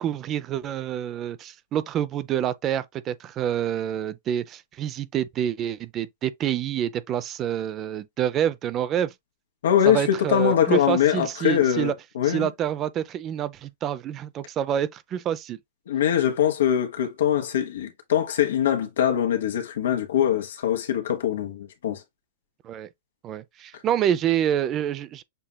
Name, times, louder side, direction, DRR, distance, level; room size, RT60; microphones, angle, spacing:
voice 1, 0.0-9.1 9.8-11.9 12.2-15.6 22.6-22.9 23.2-25.2, right 10 dB, 30° right, 0.5 m, -27 dB
voice 2, 9.6-12.5 15.9-22.0, left 10 dB, 80° left, 1.2 m, -23 dB
6.8 x 2.8 x 2.2 m
hypercardioid pair, 135°, 0 cm